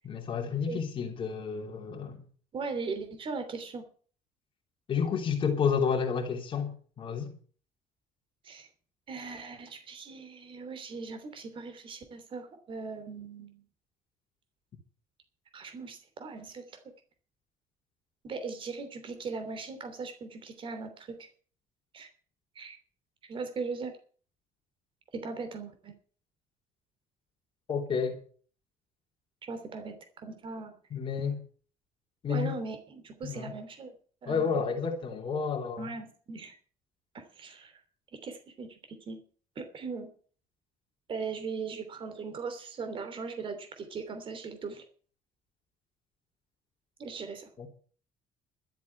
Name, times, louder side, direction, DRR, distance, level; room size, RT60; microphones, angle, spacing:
voice 1, 0.0-2.3 4.9-7.3 27.7-28.2 30.9-31.4 32.2-32.6 33.2-33.5 34.3-35.9 47.6-47.7, left 6 dB, 40° left, 3.1 m, -30 dB
voice 2, 2.5-3.9 8.4-8.7 9.1-13.6 15.5-16.8 18.2-21.3 21.9-22.1 22.5-22.8 23.3-24.0 25.1-25.9 29.5-30.8 32.3-33.9 34.2-34.7 35.8-36.6 37.1-37.8 38.1-39.2 39.5-40.2 41.1-44.8 47.0-47.5, right 4 dB, 40° right, 3.1 m, -39 dB
12.5 x 8.1 x 8.3 m
cardioid pair, 130°, 14 cm